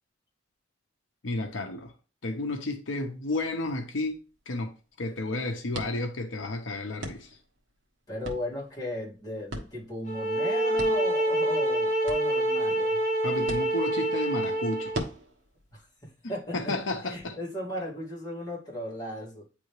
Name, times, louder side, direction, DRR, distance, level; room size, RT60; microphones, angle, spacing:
voice 1, 1.2-1.9 2.2-4.2 4.5-4.7 5.0-7.3 13.2-15.0 16.5-17.3, left 2 dB, 80° left, 0.8 m, -32 dB
sound 1, 3.1-17.2, right 1 dB, 65° right, 1.2 m, -44 dB
voice 2, 8.1-13.1 15.7-19.4, left 1 dB, 20° left, 2.4 m, -36 dB
sound 2, 10.1-15.0, right 1 dB, 40° left, 1.0 m, -26 dB
9.2 x 3.5 x 3.2 m
head